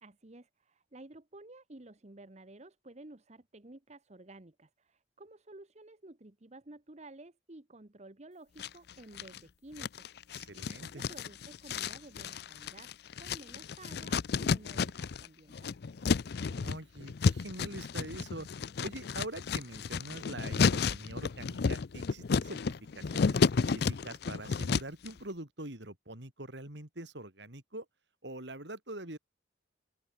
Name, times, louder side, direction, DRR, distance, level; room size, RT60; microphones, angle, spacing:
voice 1, 0.0-12.9 13.2-15.8, right 2 dB, 35° right, 1.2 m, -53 dB
sound 1, 8.6-9.4 9.8-15.3 15.5-25.1, left 5 dB, 55° left, 0.5 m, -31 dB
voice 2, 10.3-11.1 16.4-18.5 18.8-27.9 28.2-29.2, right 1 dB, 60° right, 3.9 m, -44 dB
open air
head